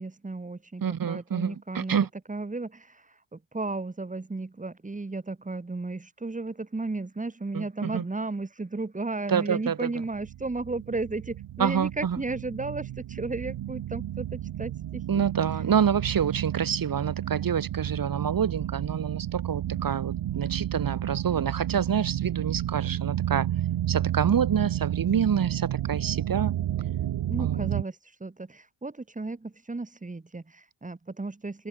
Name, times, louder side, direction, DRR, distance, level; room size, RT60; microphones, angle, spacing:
voice 1, 0.0-2.0 2.3-15.2 27.3-31.7, right 3 dB, 15° right, 1.9 m, -34 dB
voice 2, 0.8-2.1 7.5-8.0 9.3-9.9 11.6-12.2 15.1-23.5 23.9-26.5 27.4-27.7, right 7 dB, 45° right, 1.9 m, -27 dB
sound 1, 10.1-27.8, right 12 dB, 70° right, 1.4 m, -31 dB
open air
cardioid pair, 125°, 48 cm